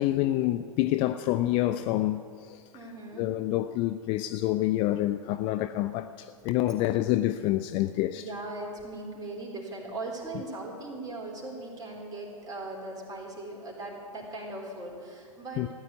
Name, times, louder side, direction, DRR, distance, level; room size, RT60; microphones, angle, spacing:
voice 1, 0.0-2.6 3.1-8.2 15.6-15.7, left 15 dB, 30° left, 0.5 m, -27 dB
voice 2, 2.7-3.3 8.1-15.7, right 2 dB, 20° right, 3.9 m, -39 dB
15.0 x 9.4 x 9.7 m
figure-of-eight pair, 105°, 18 cm